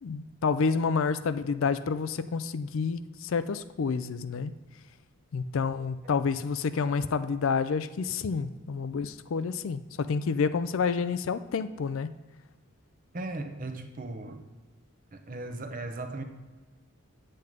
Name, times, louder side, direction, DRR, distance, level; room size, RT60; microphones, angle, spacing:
voice 1, 0.0-4.5 5.3-12.1, left 5 dB, 65° left, 13 dB, 0.4 m, -29 dB
voice 2, 13.1-14.4 15.1-16.2, right 2 dB, 35° right, 6 dB, 0.8 m, -37 dB
9.0 x 7.7 x 3.6 m, 1.3 s
head